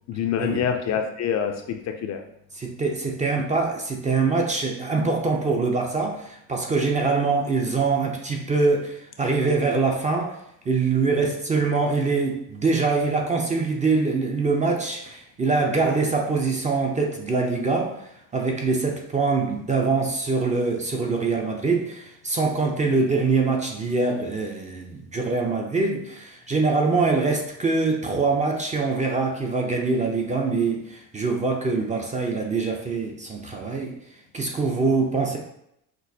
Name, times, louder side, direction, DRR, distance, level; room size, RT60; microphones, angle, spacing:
voice 1, 0.1-2.2, left 8 dB, 45° left, 5 dB, 0.4 m, -26 dB
voice 2, 2.5-10.4 10.7-17.9 18.3-33.9 34.3-35.4, right 4 dB, 20° right, 1 dB, 0.4 m, -24 dB
6.0 x 2.4 x 2.7 m, 0.78 s
cardioid pair, 135°, 39 cm